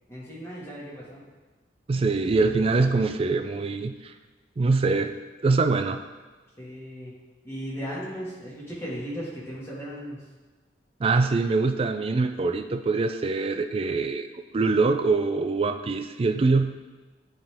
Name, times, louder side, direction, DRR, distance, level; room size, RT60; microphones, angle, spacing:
voice 1, 0.1-1.3 2.6-2.9 6.6-7.1 7.4-10.3, equal, 15° left, -7 dB, 1.8 m, -37 dB
voice 2, 1.9-4.1 4.6-5.1 5.4-6.0 11.0-16.8, right 3 dB, 30° right, 8 dB, 0.3 m, -24 dB
9.5 x 3.7 x 3.5 m, 1.3 s
head